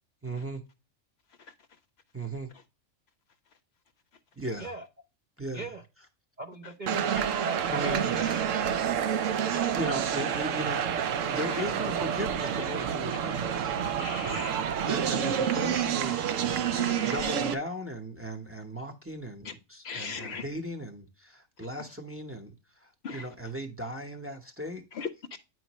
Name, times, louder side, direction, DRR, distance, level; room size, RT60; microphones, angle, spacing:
voice 1, 0.2-0.6 2.1-2.5 4.4-4.7 5.4-5.7 7.1-7.3 7.7-8.5 9.5-10.8 11.1-13.7 14.8-16.2 17.0-22.5 22.8-24.8, equal, 10° right, 0.7 m, -37 dB
voice 2, 5.5-5.8 6.4-7.9, right 2 dB, 45° right, 0.7 m, -40 dB
sound 1, 6.9-17.5, right 8 dB, 75° right, 1.0 m, -28 dB
voice 3, 14.0-14.7 16.7-17.3 19.4-19.5 19.8-20.4 23.0-23.3 24.9-25.4, left 5 dB, 60° left, 0.8 m, -39 dB
9.1 x 4.5 x 2.9 m
omnidirectional pair, 1.3 m